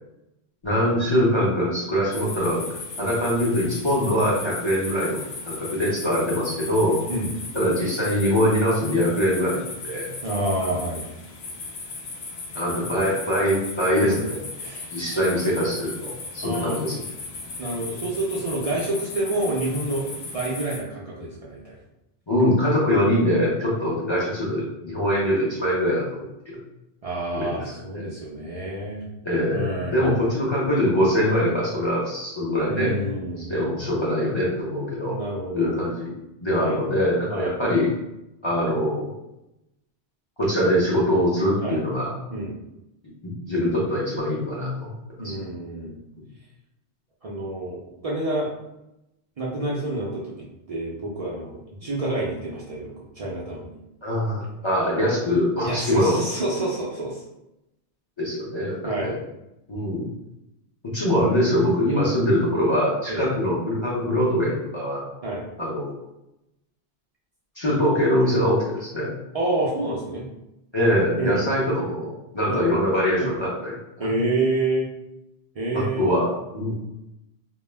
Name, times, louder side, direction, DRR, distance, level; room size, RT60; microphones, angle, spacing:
voice 1, 0.6-2.6 3.0-7.0 7.5-10.1 12.5-14.4 14.9-17.0 22.3-26.0 26.5-26.6 27.3-28.0 29.2-32.9 33.5-35.1 35.5-36.1 36.4-37.9 38.4-39.1 40.4-42.1 43.2-45.0 45.2-45.3 51.8-51.9 54.0-56.2 58.2-59.2 59.7-60.1 60.9-65.0 65.6-66.0 67.6-69.1 70.7-73.7 74.0-74.1 75.7-76.7, equal, 35° left, -7 dB, 0.5 m, -23 dB
sound 1, 2.1-20.8, left 3 dB, 70° left, 0.8 m, -37 dB
voice 2, 10.2-11.1 12.5-12.6 14.0-14.2 14.6-15.2 16.4-16.8 17.6-20.1 20.3-21.8 27.0-29.1 29.5-30.3 32.6-33.7 35.1-35.8 36.5-36.8 37.3-37.6 41.6-41.8 42.3-42.5 45.2-46.0 47.2-48.5 49.4-53.7 55.6-57.2 58.8-59.1 63.1-63.3 65.2-65.5 69.3-70.3 71.2-71.4 72.5-72.7 73.2-73.4 74.0-74.9 75.6-76.1, right 2 dB, 50° right, -5 dB, 0.4 m, -28 dB
2.2 x 2.0 x 3.2 m, 0.90 s
omnidirectional pair, 1.1 m